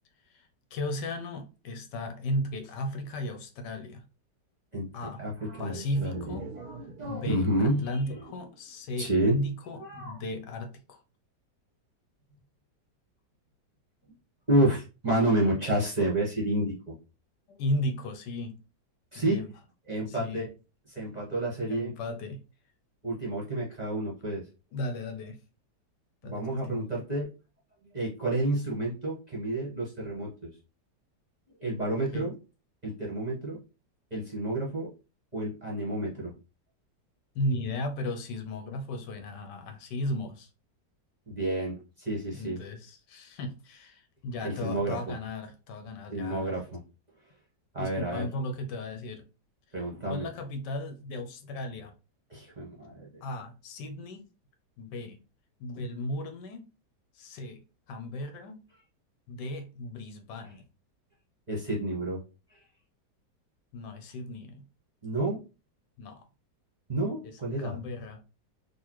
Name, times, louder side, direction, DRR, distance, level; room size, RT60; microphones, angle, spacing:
voice 1, 0.3-4.0 4.9-5.3 5.6-6.5 7.1-11.0 17.5-18.6 19.1-19.5 20.1-20.5 21.7-22.4 24.7-25.4 26.2-26.9 32.1-32.3 37.3-40.5 42.3-46.5 47.8-49.2 50.1-51.9 53.2-54.2 54.8-55.2 55.6-56.7 57.1-57.6 57.9-58.6 59.3-60.6 63.7-64.6 66.0-66.2 67.2-68.2, left 1 dB, 80° left, 1.3 m, -35 dB
voice 2, 5.2-7.9 9.0-9.4 9.8-10.2 14.5-16.9 19.1-19.4 19.9-20.5 20.9-21.9 23.0-24.5 26.2-27.3 27.9-30.5 31.6-32.3 32.8-33.6 34.1-34.9 35.3-36.3 41.3-42.6 44.4-45.1 46.1-46.8 47.7-48.3 49.7-50.3 52.3-53.1 61.5-62.2 62.5-62.6 65.0-65.4 66.9-67.8, right 1 dB, 30° right, 0.8 m, -30 dB
sound 1, 5.6-9.4 9.7-9.8, right 4 dB, 70° right, 0.9 m, -48 dB
4.0 x 2.5 x 2.9 m
omnidirectional pair, 1.9 m